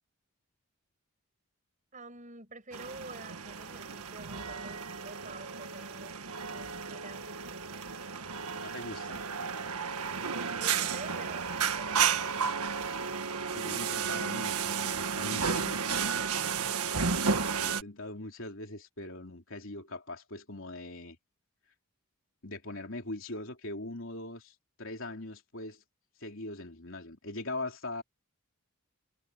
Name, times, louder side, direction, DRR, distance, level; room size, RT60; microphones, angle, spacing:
voice 1, 1.9-6.2 6.5-7.7 10.0-10.3 10.6-12.3, right 2 dB, 35° right, 6.8 m, -48 dB
sound 1, 2.7-17.8, right 6 dB, 85° right, 1.6 m, -33 dB
voice 2, 8.6-9.2 13.5-16.0 17.5-21.2 22.4-25.8 26.2-28.0, left 2 dB, 60° left, 3.8 m, -41 dB
head